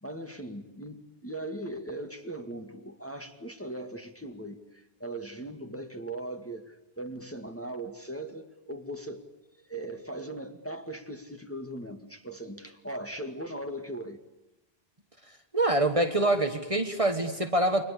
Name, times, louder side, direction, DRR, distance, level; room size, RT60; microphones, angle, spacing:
voice 1, 0.0-9.3 9.6-14.2, right 1 dB, 15° left, 4 dB, 2.0 m, -39 dB
voice 2, 15.5-17.9, right 1 dB, 35° right, 6 dB, 1.7 m, -25 dB
29.0 x 24.0 x 8.4 m, 0.95 s
omnidirectional pair, 1.0 m